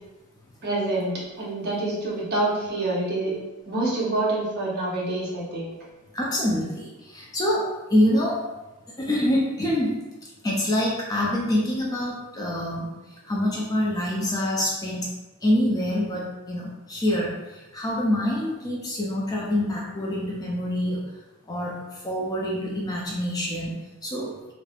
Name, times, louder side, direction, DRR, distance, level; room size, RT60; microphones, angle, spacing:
voice 1, 0.6-1.1 1.4-3.3 3.7-5.7, right 2 dB, 50° right, -5 dB, 0.8 m, -26 dB
voice 2, 6.1-8.5 9.0-10.0 10.4-12.9 13.3-15.1 15.4-21.0 21.5-24.5, left 1 dB, 15° left, -4 dB, 0.4 m, -26 dB
3.1 x 2.0 x 2.3 m, 1.1 s
head